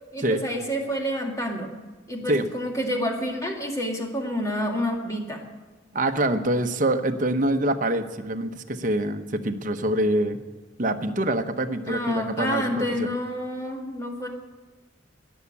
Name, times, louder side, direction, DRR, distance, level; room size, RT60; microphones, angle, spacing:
voice 1, 0.1-1.7 2.1-5.4 11.9-14.3, equal, 15° left, 1 dB, 2.0 m, -28 dB
voice 2, 5.9-10.4 10.8-13.1, right 1 dB, 40° right, 6 dB, 0.9 m, -25 dB
19.5 x 7.2 x 8.4 m, 1.3 s
head